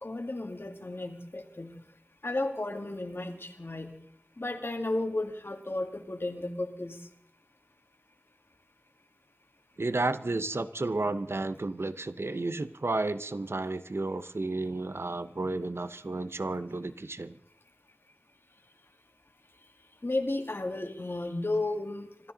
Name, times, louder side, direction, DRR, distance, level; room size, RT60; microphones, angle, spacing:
voice 1, 0.0-1.8 2.2-4.0 4.4-7.0 20.0-22.3, left 2 dB, 65° left, 5 dB, 2.0 m, -33 dB
voice 2, 9.8-17.3, right 2 dB, 80° right, 12 dB, 0.7 m, -32 dB
25.0 x 13.0 x 3.9 m, 0.72 s
wide cardioid pair, 45°, 4 cm